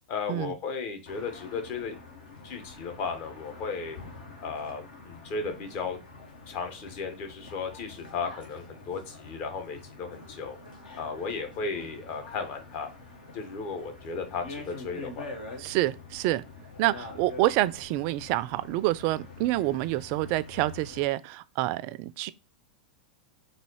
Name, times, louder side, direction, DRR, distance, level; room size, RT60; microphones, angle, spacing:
voice 1, 0.1-2.0 2.4-4.0 4.4-6.0 6.5-10.6 10.9-12.9 13.3-15.3, left 5 dB, 45° left, 1.2 m, -35 dB
sound 1, 1.1-21.1, left 3 dB, 70° left, 1.3 m, -46 dB
voice 2, 15.6-16.4 16.8-22.3, right 16 dB, 45° right, 0.4 m, -27 dB
4.0 x 2.7 x 4.6 m
hypercardioid pair, 100°, 5 cm